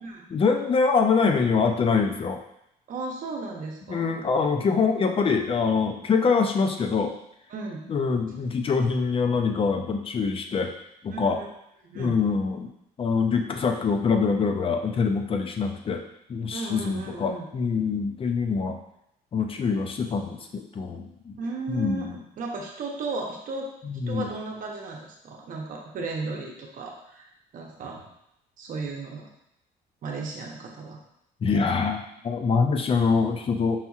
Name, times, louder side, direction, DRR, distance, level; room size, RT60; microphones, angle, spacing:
voice 1, 0.3-2.4 3.9-7.1 7.9-10.7 11.0-11.4 11.9-12.7 13.0-16.0 16.3-18.8 19.3-21.4 21.7-22.1 23.8-24.3 31.4-33.8, left 5 dB, 35° left, 5 dB, 0.5 m, -24 dB
voice 2, 2.9-4.2 7.5-7.9 11.1-11.5 11.8-12.1 16.5-17.5 21.4-28.0 28.6-29.3 30.0-31.0, right 3 dB, 55° right, 0 dB, 0.9 m, -35 dB
5.6 x 2.7 x 2.4 m, 0.78 s
cardioid pair, 110°, 17 cm